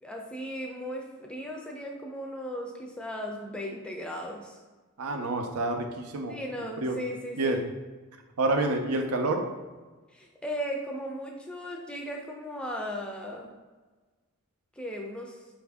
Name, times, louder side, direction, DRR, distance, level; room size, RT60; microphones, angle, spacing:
voice 1, 0.0-4.6 6.3-7.6 10.1-13.5 14.8-15.4, equal, 5° left, 0 dB, 0.4 m, -37 dB
voice 2, 5.0-6.4 6.8-6.9 7.4-7.6 8.4-9.4, right 2 dB, 85° right, 5 dB, 0.5 m, -28 dB
4.6 x 2.6 x 3.4 m, 1.3 s
head